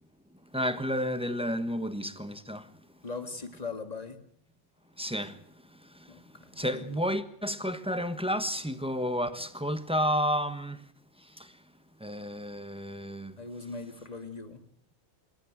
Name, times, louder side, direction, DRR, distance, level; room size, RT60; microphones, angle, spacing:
voice 1, 0.5-2.6 5.0-5.3 6.6-10.8 12.0-13.3, equal, 5° right, 1.2 m, -31 dB
voice 2, 3.0-4.2 6.1-7.0 13.4-14.6, left 4 dB, 35° left, 2.2 m, -40 dB
26.0 x 13.0 x 9.0 m
omnidirectional pair, 1.2 m